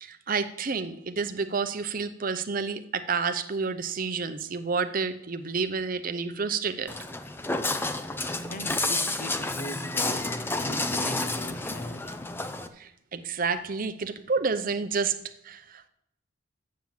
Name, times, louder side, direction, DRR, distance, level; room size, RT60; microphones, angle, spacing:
voice 1, 0.0-6.9 12.8-15.2 15.4-15.9, right 5 dB, 40° right, 10 dB, 0.6 m, -29 dB
Walk footsteps, 6.9-12.7, left 2 dB, 10° left, 0.4 m, -30 dB
voice 2, 8.5-12.2, left 1 dB, 40° left, 10 dB, 0.7 m, -39 dB
7.5 x 7.5 x 7.2 m, 0.76 s
head